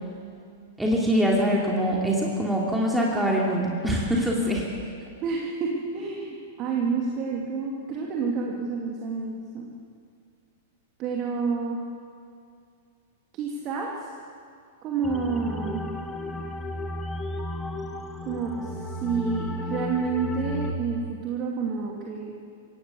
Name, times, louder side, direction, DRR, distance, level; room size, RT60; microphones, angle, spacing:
voice 1, 0.8-4.7, equal, 5° right, -3 dB, 3.0 m, -24 dB
voice 2, 5.2-9.7 11.0-11.9 13.3-14.1 14.8-15.9 18.3-22.3, right 4 dB, 35° right, -1 dB, 2.5 m, -29 dB
sound 1, 15.0-20.7, left 1 dB, 10° left, 1.6 m, -33 dB
26.0 x 17.0 x 7.0 m, 2.3 s
figure-of-eight pair, 100°, 0 cm